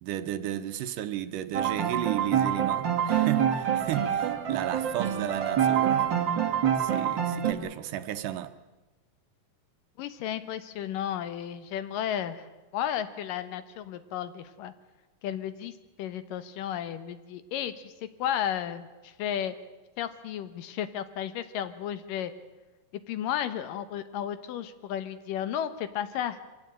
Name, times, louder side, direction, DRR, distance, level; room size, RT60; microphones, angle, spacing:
voice 1, 0.0-6.1 6.8-8.5, right 11 dB, 75° right, 2.3 m, -34 dB
sound 1, 1.5-7.5, right 9 dB, 50° right, 1.5 m, -26 dB
voice 2, 10.0-12.5 12.7-14.7 15.2-15.7 16.0-17.9 18.2-19.6 20.0-22.3 23.1-26.4, left 10 dB, 75° left, 2.6 m, -33 dB
24.0 x 16.5 x 8.8 m
omnidirectional pair, 4.1 m